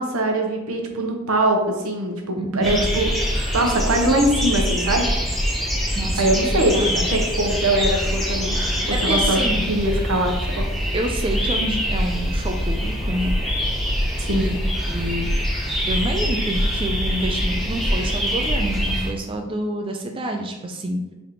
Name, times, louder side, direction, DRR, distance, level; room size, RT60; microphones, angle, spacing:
voice 1, 0.0-3.1 3.5-5.1 6.2-8.6 9.0-9.4 9.7-10.6 14.2-14.5, right 1 dB, 85° right, 3 dB, 0.7 m, -22 dB
voice 2, 2.4-2.8 6.0-6.2 6.7-7.0 9.1-9.6 10.9-13.4 14.3-14.6 14.9-15.3 15.9-21.0, right 1 dB, 25° right, 3 dB, 0.3 m, -27 dB
sound 1, 2.6-19.1, equal, ahead, 0.9 m, -24 dB
3.4 x 2.8 x 3.8 m, 1.1 s
head